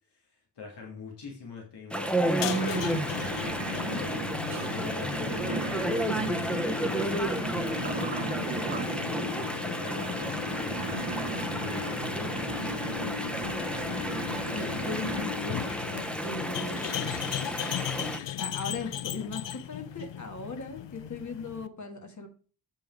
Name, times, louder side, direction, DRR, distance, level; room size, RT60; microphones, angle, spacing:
voice 1, 0.1-4.1 4.7-11.1 11.6-12.6, left 4 dB, 70° left, -1 dB, 2.3 m, -44 dB
Chatter / Stream, 1.9-18.2, right 1 dB, ahead, 0.7 m, -32 dB
sound 1, 2.3-21.7, left 11 dB, 85° left, 0.6 m, -37 dB
sound 2, 2.4-15.3, right 5 dB, 80° right, 1.3 m, -38 dB
voice 2, 13.4-15.7 16.2-16.9 18.4-22.3, left 3 dB, 40° left, 4 dB, 1.6 m, -38 dB
7.9 x 5.3 x 4.6 m, 0.38 s
wide cardioid pair, 165°, 42 cm